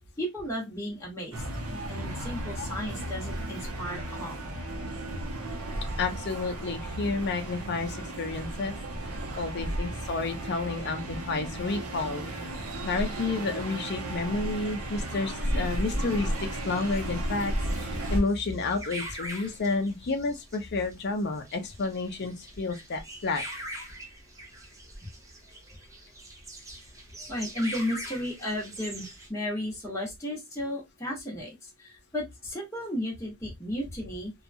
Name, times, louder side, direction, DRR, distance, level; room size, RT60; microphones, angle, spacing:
voice 1, 0.2-1.4 1.9-4.4 27.3-34.3, left 1 dB, 15° left, 1.0 m, -34 dB
sound 1, 1.3-18.2, right 1 dB, 85° right, 0.7 m, -34 dB
voice 2, 6.0-8.7 9.4-12.2 12.8-23.4, left 3 dB, 50° left, 0.5 m, -30 dB
sound 2, 16.1-29.3, right 1 dB, 15° right, 0.7 m, -43 dB
2.8 x 2.3 x 2.5 m
head